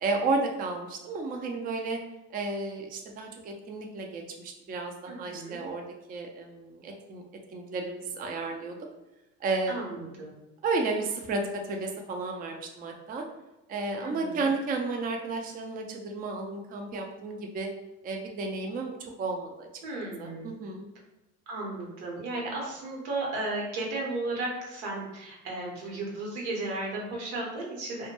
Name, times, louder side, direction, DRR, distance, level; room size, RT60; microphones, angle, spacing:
voice 1, 0.0-2.0 2.3-7.2 7.5-8.8 9.4-9.9 10.6-11.4 11.7-13.2 13.7-17.7 18.0-19.7 20.2-20.9, right 3 dB, 30° right, 2 dB, 0.4 m, -32 dB
voice 2, 5.1-5.6 9.7-10.3 14.0-14.5 19.8-20.5 21.5-28.1, right 2 dB, 85° right, -2 dB, 1.0 m, -34 dB
2.2 x 2.1 x 2.9 m, 0.96 s
supercardioid pair, 90°, 31 cm